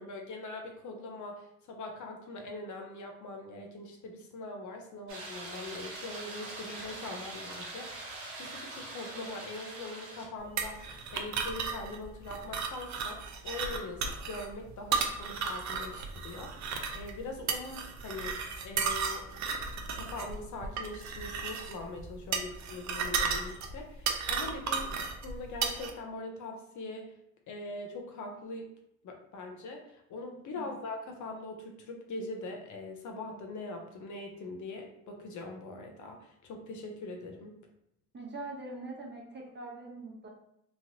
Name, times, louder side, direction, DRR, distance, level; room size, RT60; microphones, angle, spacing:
voice 1, 0.0-8.0 8.4-18.4 18.6-19.3 19.9-24.9 25.2-27.1 27.5-28.7 29.0-37.6, left 2 dB, 55° left, 2 dB, 0.7 m, -42 dB
sound 1, 5.1-10.3, right 2 dB, 85° right, 0.9 m, -43 dB
sound 2, 10.6-25.9, right 5 dB, 50° right, 0.6 m, -34 dB
voice 2, 38.1-40.3, right 2 dB, 30° right, -2 dB, 1.0 m, -42 dB
3.0 x 2.4 x 2.8 m, 0.78 s
supercardioid pair, 65°, 37 cm